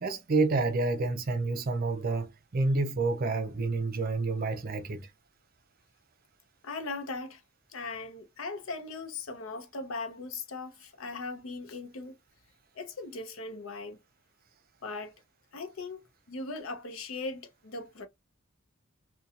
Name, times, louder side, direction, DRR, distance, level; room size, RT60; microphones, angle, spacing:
voice 1, 0.0-5.1, right 3 dB, 45° right, 0.6 m, -29 dB
voice 2, 6.6-7.4 7.7-12.1 12.8-14.0 14.8-15.1 15.5-18.1, left 3 dB, 75° left, 0.7 m, -39 dB
2.8 x 2.3 x 2.3 m
head